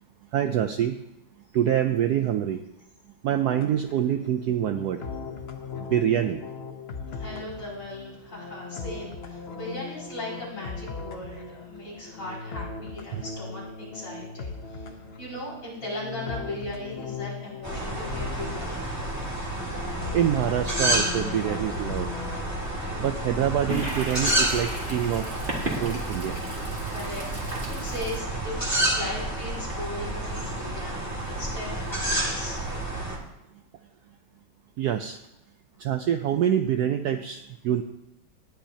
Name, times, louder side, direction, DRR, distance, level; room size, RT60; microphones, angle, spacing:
voice 1, 0.3-1.0 1.5-2.6 3.2-5.0 5.8-6.4 13.1-13.2 20.1-22.1 23.0-25.3 25.8-26.4 34.8-35.2 35.8-37.8, right 10 dB, 75° right, 8 dB, 0.9 m, -25 dB
sound 1, 3.5-23.1, left 5 dB, 50° left, 0.8 m, -39 dB
voice 2, 7.1-18.8 26.9-32.6, left 1 dB, 75° left, -7 dB, 6.1 m, -38 dB
sound 2, 17.6-33.2, right 1 dB, 10° right, 1.8 m, -30 dB
Toilet flush, 23.7-30.2, right 2 dB, 30° right, 2.3 m, -36 dB
18.5 x 10.0 x 2.8 m, 0.89 s
omnidirectional pair, 2.1 m